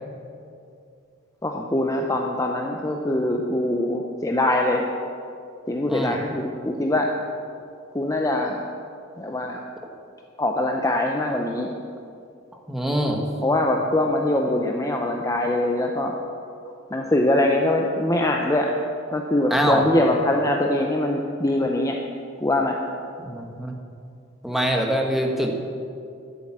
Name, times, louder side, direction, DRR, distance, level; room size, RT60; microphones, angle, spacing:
voice 1, 1.4-4.8 5.7-7.1 7.9-8.6 9.2-9.6 10.4-11.7 13.4-16.1 16.9-18.7 19.1-22.0 22.4-22.8, left 1 dB, 15° left, 1 dB, 0.7 m, -23 dB
voice 2, 5.8-6.2 12.7-13.2 19.5-19.8 23.2-23.7 24.4-25.6, equal, ahead, 1 dB, 1.3 m, -24 dB
12.0 x 7.9 x 7.4 m, 2.5 s
head